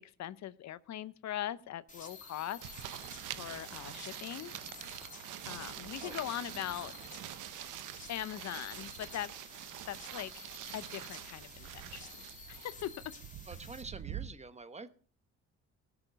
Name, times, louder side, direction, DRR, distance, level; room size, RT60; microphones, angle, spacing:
voice 1, 0.0-2.6 3.4-4.5 5.4-6.9 8.1-9.3 9.9-12.1 12.5-12.9, left 12 dB, 65° left, 16 dB, 0.7 m, -41 dB
sound 1, 1.9-13.8, left 3 dB, 25° left, 3.9 m, -51 dB
sound 2, 2.3-7.5, right 10 dB, 70° right, 1.2 m, -56 dB
sound 3, 2.6-14.3, right 12 dB, 90° right, 0.9 m, -46 dB
voice 2, 13.5-14.9, right 3 dB, 20° right, 12 dB, 1.1 m, -46 dB
17.5 x 6.9 x 5.8 m, 0.44 s
cardioid pair, 90°, 30 cm